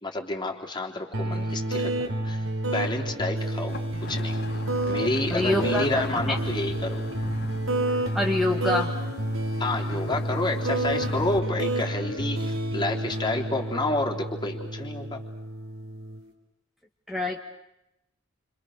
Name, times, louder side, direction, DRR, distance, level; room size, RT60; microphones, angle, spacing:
voice 1, 0.0-7.0 9.6-15.2, left 2 dB, 20° left, 2 dB, 3.4 m, -30 dB
sound 1, 1.1-16.2, right 1 dB, 90° right, 4.5 m, -29 dB
sound 2, 3.7-11.4, left 2 dB, 55° left, 1.5 m, -41 dB
voice 2, 5.3-6.4 8.1-8.9 17.1-17.4, left 2 dB, ahead, 1 dB, 1.9 m, -26 dB
29.5 x 26.0 x 6.6 m, 0.86 s
head